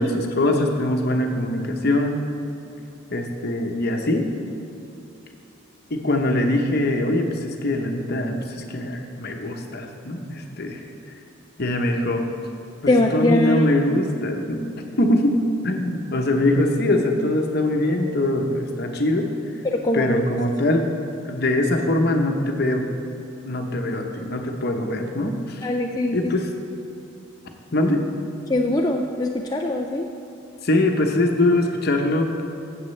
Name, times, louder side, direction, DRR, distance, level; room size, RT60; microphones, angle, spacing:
voice 1, 0.0-2.2 3.1-4.2 5.9-10.8 11.6-12.3 12.8-14.6 15.0-15.3 15.6-19.3 19.9-20.9 21.2-22.9 23.4-25.7 26.1-26.5 27.7-28.0 30.6-32.4, left 1 dB, 50° left, 3 dB, 0.9 m, -22 dB
voice 2, 12.9-13.7 19.6-20.2 25.6-26.3 28.5-30.1, left 1 dB, 20° left, 1 dB, 0.4 m, -22 dB
14.5 x 7.8 x 3.3 m, 2.9 s
head